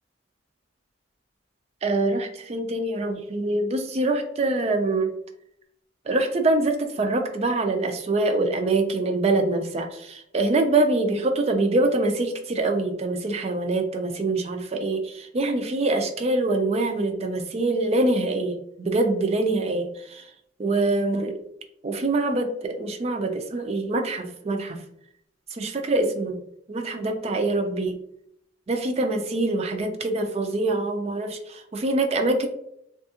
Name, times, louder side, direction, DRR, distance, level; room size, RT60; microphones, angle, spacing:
voice 1, 1.8-5.1 6.1-20.2 20.6-21.4 21.8-24.8 25.6-26.4 26.7-28.0 28.7-32.5, right 2 dB, 35° right, 5 dB, 0.4 m, -24 dB
3.4 x 2.3 x 2.8 m, 0.73 s
head